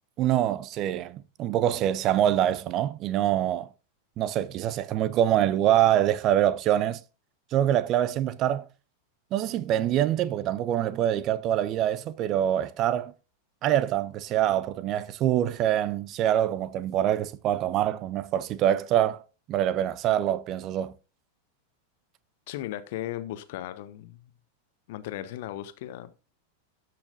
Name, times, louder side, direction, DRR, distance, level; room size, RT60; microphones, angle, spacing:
voice 1, 0.2-3.7 4.2-7.0 7.5-8.7 9.3-13.1 13.6-19.2 19.5-20.9, right 11 dB, 35° right, 0.6 m, -25 dB
voice 2, 22.5-24.3 24.9-26.1, left 13 dB, 50° left, 0.8 m, -36 dB
13.0 x 5.9 x 2.6 m
figure-of-eight pair, 90°, 0 cm